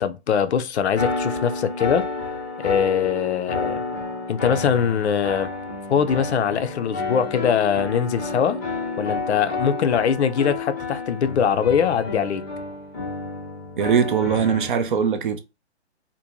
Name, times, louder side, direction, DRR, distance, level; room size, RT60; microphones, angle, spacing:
voice 1, 0.0-2.1 2.6-3.8 4.3-5.5 5.9-8.6 9.0-12.4, left 7 dB, 70° left, 0.5 m, -22 dB
sound 1, 0.9-14.7, left 3 dB, 15° left, 0.4 m, -30 dB
voice 2, 13.8-15.4, right 7 dB, 45° right, 0.4 m, -21 dB
2.6 x 2.1 x 2.8 m
hypercardioid pair, 145°, 35 cm